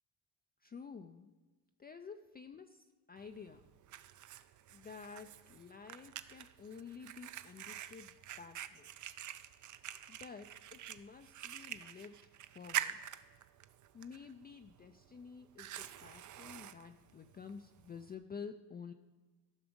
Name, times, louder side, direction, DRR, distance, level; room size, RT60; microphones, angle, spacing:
voice 1, 0.6-1.3 1.8-3.7 4.7-8.9 10.1-13.0 13.9-18.9, left 5 dB, 25° left, 7 dB, 0.3 m, -51 dB
Fire, 3.2-18.2, right 11 dB, 50° right, 0.5 m, -47 dB
13.5 x 6.0 x 5.2 m, 1.3 s
cardioid pair, 120°, 41 cm